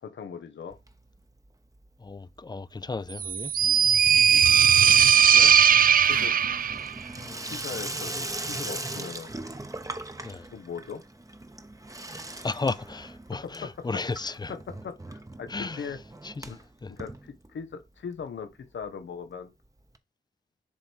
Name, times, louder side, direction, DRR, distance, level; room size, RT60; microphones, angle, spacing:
voice 1, 0.0-0.8 5.3-5.6 6.1-6.3 7.4-9.3 10.5-11.0 13.4-13.7 14.2-14.6 14.8-16.0 16.5-16.6 16.9-19.5, left 6 dB, 85° left, 1.0 m, -39 dB
Water tap faucet / Sink (filling or washing), 0.7-1.5 1.7-2.3 2.6-17.9 18.2-18.3 18.5-18.6 18.8-18.9 19.9-20.0, right 2 dB, 20° right, 0.9 m, -40 dB
voice 2, 2.0-3.5 7.2-7.5 10.2-10.5 12.4-14.5 15.5-15.9 16.2-16.5 16.8-16.9, left 3 dB, 20° left, 0.5 m, -34 dB
sound 1, 3.2-6.9, right 8 dB, 50° right, 0.4 m, -19 dB
7.3 x 3.5 x 4.5 m
cardioid pair, 55°, 19 cm